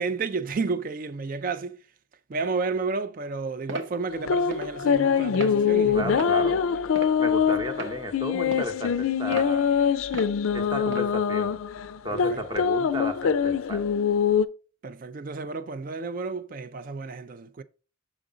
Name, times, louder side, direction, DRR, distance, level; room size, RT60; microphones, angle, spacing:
voice 1, 0.0-1.8 2.3-6.3 7.8-7.9 12.1-12.4 14.8-17.6, right 4 dB, 40° right, 0.4 m, -31 dB
sound 1, 3.7-3.9 4.5-4.7 5.3-5.6 6.2-6.4 7.0-7.3 7.8-7.9 8.5-8.7 9.3-9.5 10.1-10.3 10.9-11.1, right 3 dB, 65° right, 0.9 m, -36 dB
sound 2, 4.1-14.4, left 7 dB, 80° left, 0.4 m, -24 dB
voice 2, 5.9-6.6 7.2-9.7 10.5-11.6 12.0-13.9, equal, 20° right, 0.8 m, -34 dB
6.1 x 5.0 x 3.8 m
head